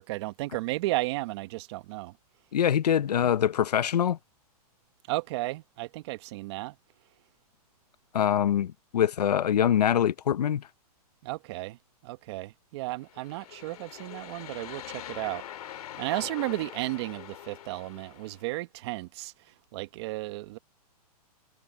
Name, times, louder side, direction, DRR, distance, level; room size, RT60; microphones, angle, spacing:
voice 1, 0.0-2.1 5.1-6.7 11.2-11.8 12.0-15.4 15.7-19.3 19.7-20.6, right 20 dB, 45° right, 1.3 m, -34 dB
voice 2, 2.5-4.2 8.1-10.6, left 9 dB, 85° left, 0.8 m, -24 dB
sound 1, 13.0-18.5, left 11 dB, 70° left, 2.4 m, -43 dB
hypercardioid pair, 145°, 20 cm